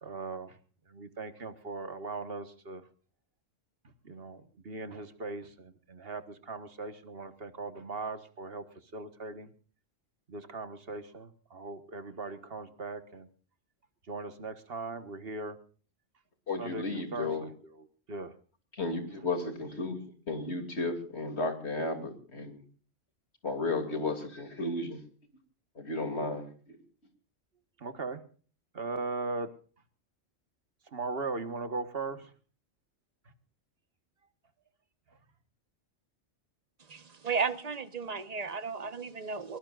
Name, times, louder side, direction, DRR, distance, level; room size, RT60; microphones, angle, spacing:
voice 1, 0.0-0.6 0.9-2.9 4.0-8.7 8.9-9.5 10.3-13.3 14.1-15.6 16.6-18.3 19.1-19.6 27.8-28.2 28.7-29.6 30.9-32.3, right 3 dB, 50° right, 1.7 m, -39 dB
voice 2, 16.5-17.5 18.7-20.0 20.3-22.6 23.4-25.0 25.8-26.8, left 3 dB, 55° left, 3.1 m, -34 dB
voice 3, 36.9-39.6, right 5 dB, 35° right, 1.2 m, -34 dB
22.5 x 21.0 x 2.5 m
omnidirectional pair, 1.3 m